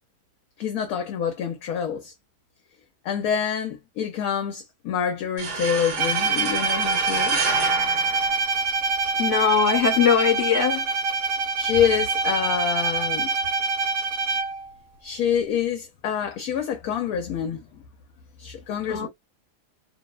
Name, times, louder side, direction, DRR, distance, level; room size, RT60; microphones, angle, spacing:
voice 1, 0.6-2.1 3.0-7.4 11.3-13.3 15.0-17.6 18.4-19.1, left 8 dB, 70° left, 1.0 m, -26 dB
sound 1, 5.4-9.0, right 4 dB, 55° right, 1.1 m, -30 dB
Bowed string instrument, 6.0-14.7, right 4 dB, 90° right, 1.2 m, -25 dB
voice 2, 9.2-10.9 11.8-11.9 18.9-19.1, left 7 dB, 45° left, 1.2 m, -21 dB
2.8 x 2.0 x 2.2 m
omnidirectional pair, 1.7 m